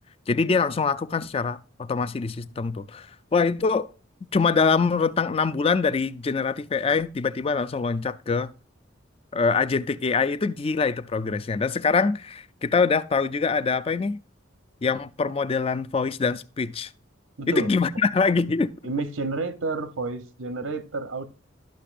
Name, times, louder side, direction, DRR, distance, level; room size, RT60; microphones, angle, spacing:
voice 1, 0.3-3.9 4.3-8.5 9.3-14.2 14.8-16.9 17.5-18.7, left 4 dB, 30° left, 0.3 m, -24 dB
voice 2, 17.4-17.7 18.8-21.2, right 3 dB, 85° right, 1.0 m, -30 dB
11.5 x 6.5 x 2.5 m
head